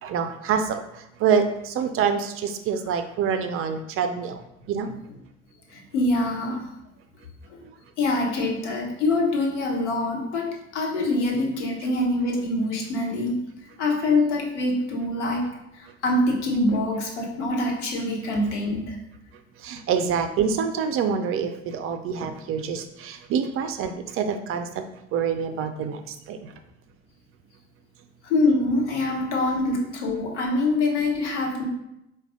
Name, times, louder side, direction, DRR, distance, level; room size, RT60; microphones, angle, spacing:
voice 1, 0.0-4.4 4.7-4.9 19.6-24.8 25.1-26.0 26.3-26.5, right 6 dB, 40° right, 8 dB, 0.4 m, -26 dB
voice 2, 5.7-6.6 8.0-13.4 13.8-15.5 15.8-19.0 28.2-31.6, left 2 dB, 75° left, 0 dB, 1.0 m, -24 dB
4.6 x 2.3 x 3.6 m, 0.84 s
figure-of-eight pair, 60°, 35 cm